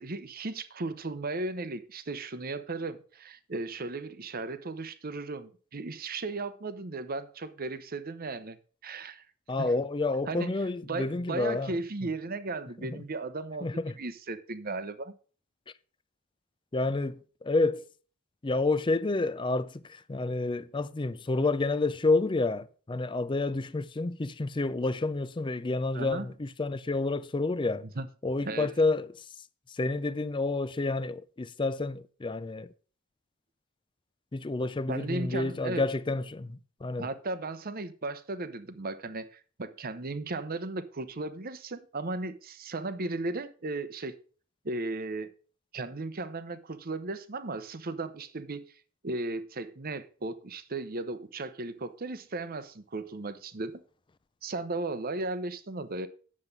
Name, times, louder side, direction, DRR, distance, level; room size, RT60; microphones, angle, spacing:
voice 1, 0.0-8.6 8.8-9.3 9.6-9.7 10.3-10.5 10.9-13.7 14.0-15.1 25.9-26.2 28.0-28.1 28.4-28.7 34.9-35.8 37.0-44.2 44.6-45.3 45.7-48.6 49.0-53.8 54.4-56.1, right 2 dB, 40° right, 0.8 m, -36 dB
voice 2, 9.5-11.8 12.8-13.0 13.6-14.0 16.7-17.9 18.4-27.9 28.2-32.7 34.3-37.1, left 3 dB, 20° left, 0.4 m, -29 dB
9.9 x 7.4 x 5.3 m
head